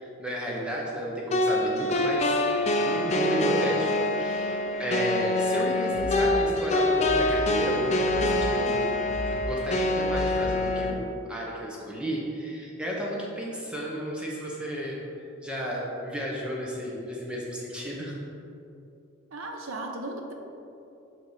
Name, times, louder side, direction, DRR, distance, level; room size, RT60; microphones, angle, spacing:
voice 1, 0.0-8.8 9.4-18.2, equal, 5° right, -4 dB, 0.8 m, -33 dB
sound 1, 1.3-10.9, left 1 dB, 30° left, 0.4 m, -25 dB
sound 2, 5.9-10.9, equal, 85° right, 1.2 m, -37 dB
voice 2, 19.3-20.3, right 2 dB, 65° right, 3 dB, 0.7 m, -36 dB
6.8 x 3.5 x 4.8 m, 2.7 s
head